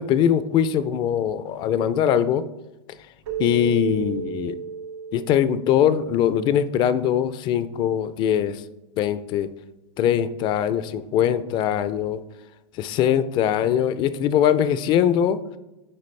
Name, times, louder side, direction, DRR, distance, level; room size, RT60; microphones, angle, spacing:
voice 1, 0.0-2.4 3.4-4.6 5.1-8.6 9.0-9.5 10.0-12.2 12.8-15.4, left 9 dB, 30° left, 14 dB, 0.4 m, -21 dB
Keyboard (musical), 3.3-6.5, right 6 dB, 70° right, 1.1 m, -33 dB
8.4 x 4.6 x 3.2 m, 1.0 s
supercardioid pair, 140°, 15 cm